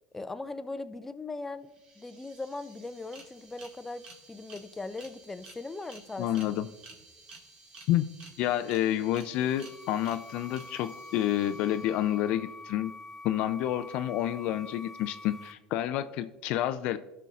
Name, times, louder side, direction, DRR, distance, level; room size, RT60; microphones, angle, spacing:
voice 1, 0.1-6.4, left 3 dB, 15° left, 10 dB, 0.5 m, -39 dB
sound 1, 1.4-1.5 1.7-12.5, right 3 dB, 45° right, 1.9 m, -53 dB
voice 2, 6.2-6.7 7.9-8.1 8.4-12.9 13.2-17.0, left 12 dB, 60° left, 11 dB, 0.4 m, -29 dB
sound 2, 9.1-15.5, left 2 dB, 10° right, 1.0 m, -46 dB
15.5 x 5.6 x 2.4 m, 1.0 s
hypercardioid pair, 80°, 2 cm